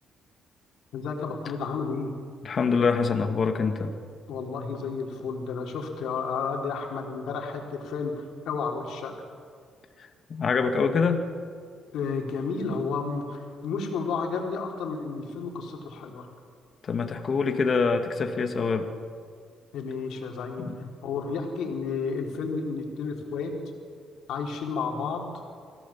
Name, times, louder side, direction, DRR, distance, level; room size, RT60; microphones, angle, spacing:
voice 1, 0.9-2.1 4.3-9.1 11.9-16.3 19.7-20.7 21.0-23.5 24.3-25.3, left 5 dB, 80° left, 1 dB, 3.8 m, -31 dB
voice 2, 2.4-3.9 10.3-11.2 16.8-18.9 20.6-20.8, left 5 dB, 50° left, 6 dB, 1.9 m, -25 dB
26.0 x 16.5 x 7.4 m, 2.2 s
cardioid pair, 90°, 0 cm